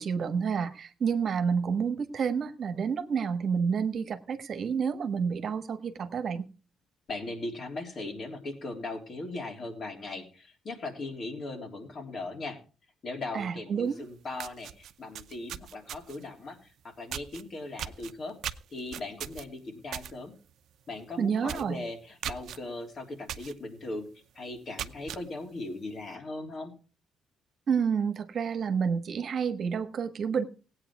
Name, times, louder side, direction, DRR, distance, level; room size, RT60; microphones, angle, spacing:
voice 1, 0.0-6.5 13.3-14.0 21.2-21.9 27.7-30.4, right 6 dB, 55° right, 10 dB, 1.3 m, -29 dB
voice 2, 7.1-12.6 13.0-18.4 18.7-20.3 20.9-24.1 24.3-26.7, left 2 dB, 50° left, 3 dB, 3.3 m, -39 dB
sound 1, 13.9-14.0 14.3-16.3 17.1-17.4 17.8-20.1 20.5-20.7 21.0-21.1 21.4-21.7 22.2-22.6 23.3-23.5 24.0-24.1 24.6-25.2, right 10 dB, 75° right, 0.7 m, -38 dB
17.0 x 8.8 x 4.7 m, 0.35 s
cardioid pair, 90°, 0 cm